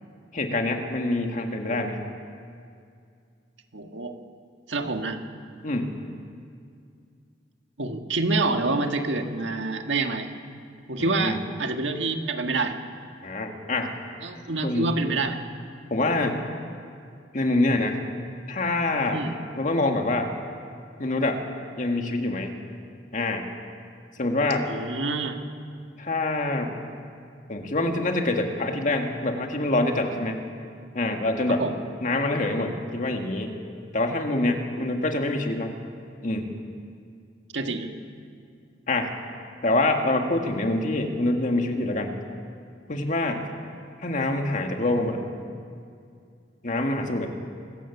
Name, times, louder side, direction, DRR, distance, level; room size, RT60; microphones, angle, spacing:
voice 1, 0.3-2.0 5.6-6.0 11.0-11.4 13.2-13.9 14.6-14.9 15.9-16.4 17.3-18.0 18.5-19.2 19.6-20.3 21.0-21.4 21.8-22.5 23.1-23.5 24.2-24.7 26.0-26.7 27.5-30.4 30.9-31.6 32.0-33.6 33.9-35.8 36.2-36.5 38.9-39.1 39.6-42.2 42.9-43.4 44.0-45.2 46.6-47.3, left 2 dB, 45° left, 4 dB, 1.9 m, -25 dB
voice 2, 3.7-4.1 4.7-5.2 7.8-10.3 10.9-12.8 14.2-15.4 19.1-19.4 24.7-25.4 31.6-31.7 34.8-34.9 37.5-37.9, right 3 dB, 85° right, 5 dB, 1.8 m, -27 dB
24.5 x 16.5 x 7.3 m, 2.3 s
head